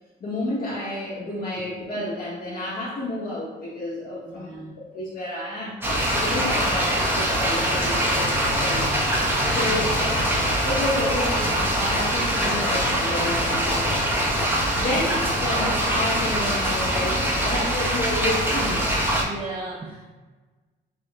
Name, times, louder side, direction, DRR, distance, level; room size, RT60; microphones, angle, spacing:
voice 1, 0.2-5.8 6.2-8.9 9.4-10.0 10.5-14.0 14.3-18.9, left 1 dB, 50° left, -9 dB, 1.4 m, -30 dB
voice 2, 4.3-4.7 9.4-9.8 14.0-14.1 17.5-17.7 19.2-20.1, right 2 dB, 25° right, -2 dB, 0.6 m, -36 dB
Rain with Thunder, 5.8-19.2, equal, 10° right, 1.1 m, -23 dB
5.9 x 2.9 x 2.4 m, 1.3 s
cardioid pair, 90°, 20 cm